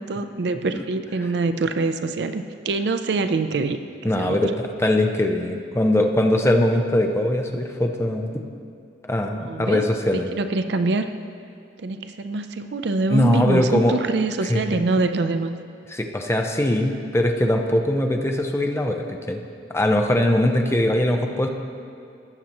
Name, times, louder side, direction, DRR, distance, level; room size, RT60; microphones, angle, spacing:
voice 1, 0.1-4.4 9.4-9.8 10.3-11.1 11.8-15.6, right 3 dB, 65° right, 9 dB, 0.5 m, -24 dB
voice 2, 4.0-8.4 9.1-10.3 13.1-13.9 14.5-14.6 15.9-19.4 19.7-21.5, left 1 dB, 15° left, 3 dB, 0.6 m, -21 dB
17.5 x 7.1 x 3.0 m, 2.5 s
head